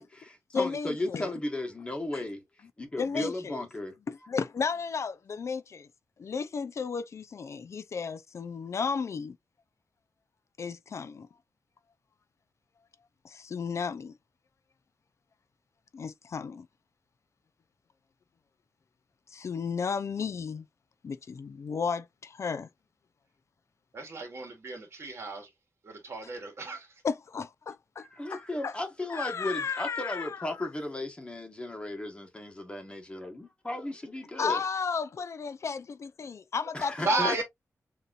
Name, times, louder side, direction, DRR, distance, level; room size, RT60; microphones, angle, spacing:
voice 1, 0.0-2.4 2.8-3.9 28.0-34.6 36.7-37.4, left 1 dB, 20° left, 1.3 m, -35 dB
voice 2, 0.5-1.3 2.1-2.2 3.0-3.6 4.1-5.9 6.2-9.4 10.6-11.3 13.2-14.1 15.9-16.7 19.3-20.7 21.0-22.7 27.0-28.7 29.1-30.7 34.4-37.4, left 5 dB, 55° left, 0.4 m, -34 dB
voice 3, 23.9-25.5 25.8-26.9 37.0-37.4, right 3 dB, 50° right, 2.3 m, -33 dB
6.6 x 2.9 x 2.5 m
wide cardioid pair, 150°, 6 cm